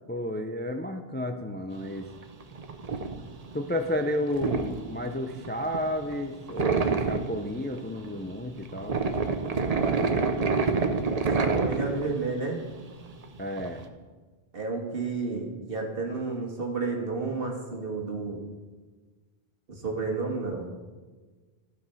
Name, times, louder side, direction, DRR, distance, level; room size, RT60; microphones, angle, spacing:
voice 1, 0.1-2.1 3.5-9.0 13.4-13.8, left 1 dB, 15° left, 5 dB, 0.5 m, -31 dB
sound 1, 1.7-13.8, right 4 dB, 40° right, 0.8 m, -28 dB
voice 2, 11.3-12.6 14.5-18.4 19.7-20.7, right 3 dB, 60° right, 1 dB, 1.9 m, -31 dB
15.0 x 5.2 x 5.6 m, 1.3 s
omnidirectional pair, 1.1 m